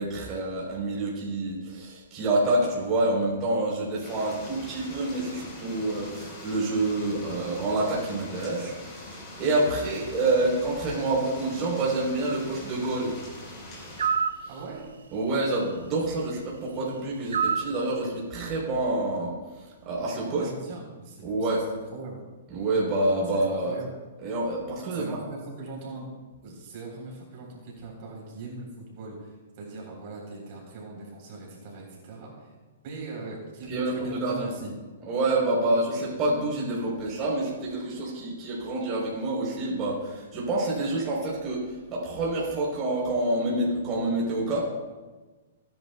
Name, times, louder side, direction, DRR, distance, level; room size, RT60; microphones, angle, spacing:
voice 1, 0.0-13.1 14.4-14.5 15.1-20.5 21.2-21.6 22.5-23.8 24.2-25.2 33.7-33.9 34.2-34.5 35.1-44.6, right 2 dB, 25° right, -5 dB, 3.8 m, -27 dB
sound 1, 4.0-14.1, left 1 dB, 25° left, 4.2 m, -43 dB
sound 2, 14.0-14.4 17.3-17.7, right 6 dB, 90° right, 0.8 m, -25 dB
voice 2, 14.5-14.8 20.2-22.2 23.3-23.9 24.9-26.1 26.4-32.6 32.8-34.7 35.5-35.8, right 3 dB, 45° right, -2 dB, 3.8 m, -41 dB
18.5 x 10.5 x 2.3 m, 1.3 s
hypercardioid pair, 150°, 0 cm